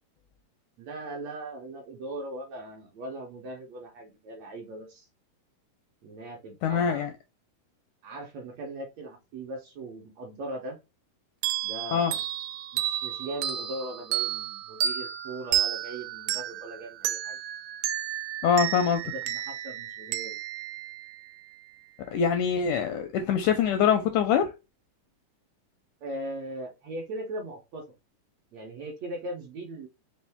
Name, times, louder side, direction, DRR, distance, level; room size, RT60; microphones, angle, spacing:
voice 1, 0.8-5.1 6.0-7.1 8.0-10.8 11.6-12.2 12.7-17.4 19.0-20.5 26.0-27.8 28.5-29.9, right 1 dB, 70° right, 1.7 m, -39 dB
voice 2, 6.6-7.1 11.9-12.1 18.4-19.1 22.1-24.5, left 7 dB, 80° left, 1.7 m, -24 dB
sound 1, 11.4-21.7, right 11 dB, 85° right, 2.3 m, -32 dB
5.4 x 2.5 x 3.4 m
omnidirectional pair, 4.0 m